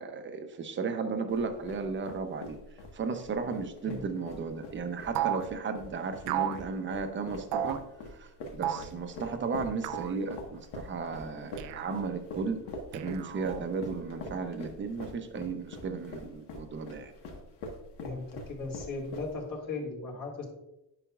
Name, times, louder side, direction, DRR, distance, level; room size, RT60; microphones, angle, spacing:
voice 1, 0.0-2.6 2.9-7.8 8.1-12.6 12.9-17.1, right 4 dB, 25° right, 7 dB, 0.7 m, -35 dB
sound 1, 1.3-19.6, left 2 dB, 65° left, 1.5 m, -44 dB
sound 2, 5.1-5.5 6.3-6.6 7.5-7.8 8.6-8.9 9.8-10.2 11.6-12.1 12.9-13.6, right 11 dB, 75° right, 0.6 m, -33 dB
voice 2, 18.0-20.4, left 3 dB, 50° left, -2 dB, 2.5 m, -37 dB
10.0 x 5.8 x 2.4 m, 0.91 s
cardioid pair, 150°, 43 cm